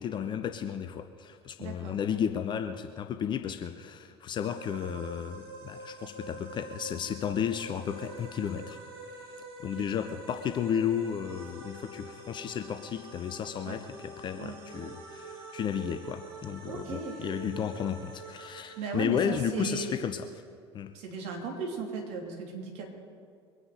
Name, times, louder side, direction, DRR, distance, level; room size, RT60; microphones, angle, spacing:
voice 1, 0.0-8.8 9.1-20.2 20.7-20.9, left 8 dB, 35° left, 8 dB, 0.8 m, -33 dB
voice 2, 1.6-2.0 9.7-9.9 13.6-13.8 14.4-14.6 16.7-17.3 18.7-19.9 20.9-22.9, right 4 dB, 50° right, 0 dB, 3.2 m, -36 dB
sound 1, 4.4-19.8, right 3 dB, 65° right, 2.3 m, -46 dB
23.0 x 9.7 x 5.2 m, 2.2 s
figure-of-eight pair, 70°, 14 cm